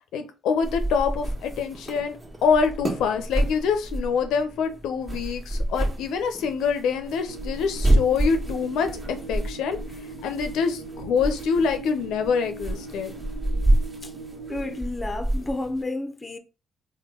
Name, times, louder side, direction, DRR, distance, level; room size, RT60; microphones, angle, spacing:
voice 1, 0.1-9.8 10.2-13.1, left 6 dB, 85° left, 0.5 m, -25 dB
sound 1, 0.6-15.8, right 1 dB, 15° right, 1.3 m, -29 dB
sound 2, 7.3-14.8, right 3 dB, 75° right, 0.7 m, -40 dB
voice 2, 14.5-16.4, left 2 dB, 20° left, 0.6 m, -31 dB
3.8 x 2.1 x 3.6 m
cardioid pair, 90°, 0 cm